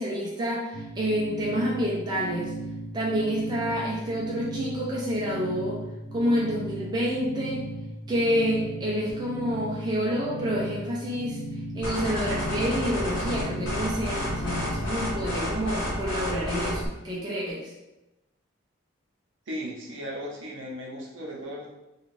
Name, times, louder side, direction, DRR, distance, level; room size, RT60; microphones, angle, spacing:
voice 1, 0.0-2.5 2.9-5.8 6.1-7.6 8.1-11.4 11.7-17.7, equal, 20° right, -5 dB, 0.4 m, -28 dB
sound 1, 0.7-15.3, right 1 dB, 45° left, 0.5 m, -37 dB
sound 2, 11.8-16.9, left 1 dB, 65° left, 1.0 m, -30 dB
voice 2, 19.5-21.7, equal, 65° right, -2 dB, 0.7 m, -36 dB
2.4 x 2.3 x 3.1 m, 0.99 s
head